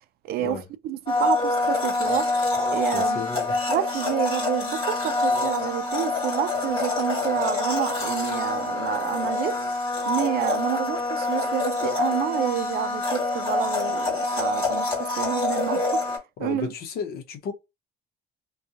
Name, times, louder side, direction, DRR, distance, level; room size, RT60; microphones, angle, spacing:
voice 1, 0.2-2.4 2.7-3.2 3.7-9.7 10.1-16.0 16.4-16.7, right 12 dB, 65° right, 0.4 m, -29 dB
Domestic sounds home sounds, 1.1-16.2, left 3 dB, 30° left, 1.6 m, -26 dB
voice 2, 2.9-3.6 16.4-17.5, left 6 dB, 65° left, 0.8 m, -33 dB
2.7 x 2.3 x 2.4 m
cardioid pair, 110°, 17 cm